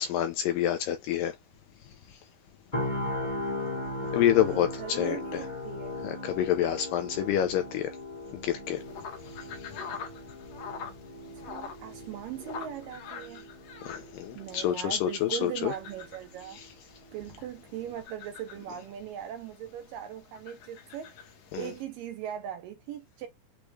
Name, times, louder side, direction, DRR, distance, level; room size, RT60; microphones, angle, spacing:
voice 1, 0.0-1.4 4.1-5.4 6.0-7.9 8.3-8.8 9.6-9.7 13.9-15.7 16.6-16.7 21.5-21.7, left 11 dB, 85° left, 2.0 m, -28 dB
sound 1, 2.7-16.7 17.1-17.3, left 2 dB, 30° left, 0.8 m, -38 dB
voice 2, 4.3-6.0 11.4-13.5 14.3-16.6 17.1-23.3, right 10 dB, 80° right, 2.0 m, -40 dB
sound 2, 8.8-21.8, left 6 dB, 65° left, 1.6 m, -46 dB
6.5 x 2.3 x 3.2 m
omnidirectional pair, 4.5 m